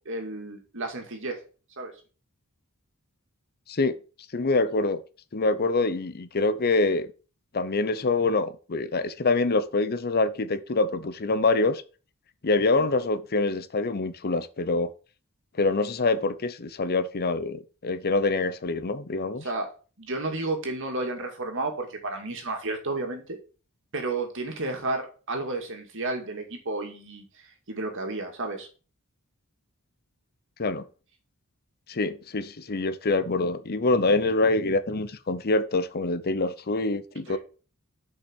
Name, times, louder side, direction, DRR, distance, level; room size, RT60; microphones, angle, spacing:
voice 1, 0.1-1.4 1.8-1.9 12.8-12.9 19.4-19.7 20.0-23.4 23.9-28.7 37.3-37.4, right 2 dB, 60° right, 2.3 m, -32 dB
voice 2, 4.3-5.0 5.3-7.1 7.5-11.8 12.4-14.9 15.6-19.4 30.6-30.8 31.9-37.4, left 3 dB, 45° left, 0.7 m, -25 dB
6.9 x 5.5 x 6.2 m
head